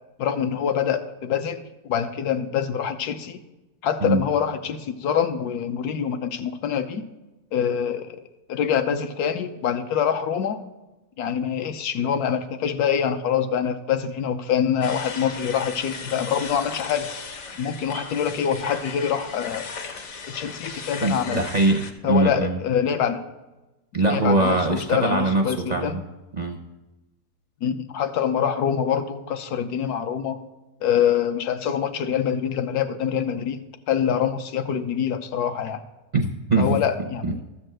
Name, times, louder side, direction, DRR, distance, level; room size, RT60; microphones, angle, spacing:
voice 1, 0.2-3.4 3.8-7.0 7.5-10.6 11.2-17.1 17.6-19.7 20.3-21.4 22.0-23.2 24.1-26.0 27.6-30.4 30.8-33.6 33.9-35.8 36.6-37.4, left 8 dB, 75° left, 8 dB, 1.2 m, -25 dB
sound 1, 14.8-21.9, left 5 dB, 55° left, 1.1 m, -37 dB
voice 2, 21.0-22.6 23.9-26.0 26.4-26.6 36.1-36.8 37.2-37.4, right 2 dB, 50° right, 2 dB, 0.5 m, -22 dB
13.0 x 4.4 x 7.7 m, 1.1 s
omnidirectional pair, 1.7 m